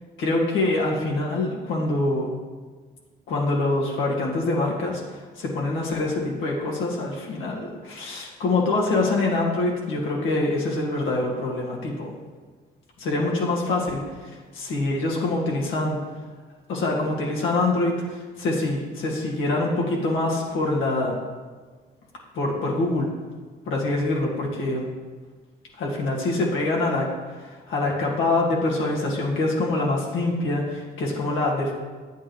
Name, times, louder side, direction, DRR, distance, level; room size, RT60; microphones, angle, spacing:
voice 1, 0.2-2.3 3.3-12.1 13.0-16.1 16.7-21.2 22.3-23.1 23.7-24.9 25.8-27.1 27.4-31.7, left 2 dB, 80° left, -2 dB, 2.0 m, -25 dB
8.5 x 8.0 x 3.2 m, 1.5 s
cardioid pair, 90°, 20 cm